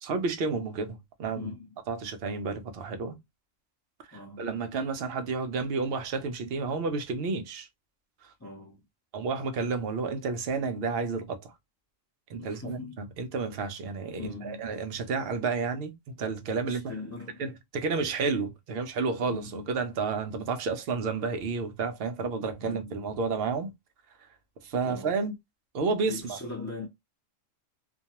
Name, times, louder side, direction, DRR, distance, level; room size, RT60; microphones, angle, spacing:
voice 1, 0.0-1.5 1.9-3.2 4.1-7.7 9.1-11.5 12.3-16.9 17.4-23.7 24.6-25.3 25.7-26.4, right 4 dB, 60° right, 0.7 m, -31 dB
voice 2, 1.4-1.8 4.1-4.5 8.4-8.8 12.4-13.0 14.2-14.7 16.7-17.4 19.3-19.7 22.6-23.0 24.8-25.1 26.1-26.9, left 3 dB, 15° left, 0.6 m, -40 dB
2.4 x 2.2 x 2.8 m
omnidirectional pair, 1.3 m